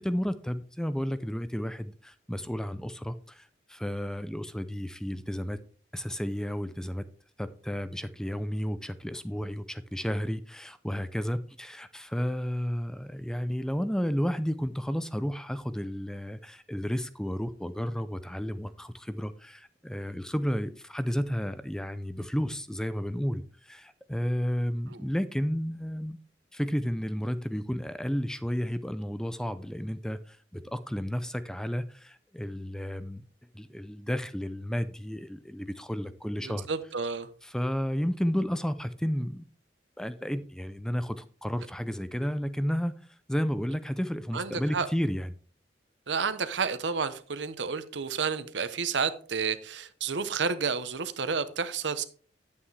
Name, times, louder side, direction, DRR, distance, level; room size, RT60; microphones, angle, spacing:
voice 1, 0.0-5.6 5.9-7.1 7.4-26.2 26.5-33.2 33.5-36.7 37.4-39.4 40.0-43.0 43.3-45.3, equal, 5° left, 0.4 m, -32 dB
voice 2, 36.4-37.3 44.3-44.9 46.1-52.0, right 5 dB, 90° right, 0.8 m, -31 dB
9.6 x 8.5 x 3.3 m
head